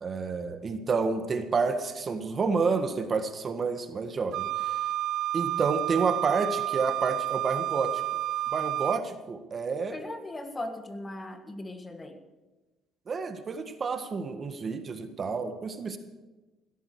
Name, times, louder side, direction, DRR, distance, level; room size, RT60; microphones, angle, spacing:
voice 1, 0.0-4.8 5.3-8.0 8.5-10.0 13.1-16.0, right 4 dB, 40° right, 8 dB, 1.6 m, -29 dB
Wind instrument woodwind instrument, 4.3-9.0, right 14 dB, 70° right, 0.4 m, -30 dB
voice 2, 9.9-12.2, left 1 dB, 25° left, 8 dB, 1.6 m, -38 dB
16.0 x 13.5 x 4.8 m, 1.1 s
supercardioid pair, 80°, 0 cm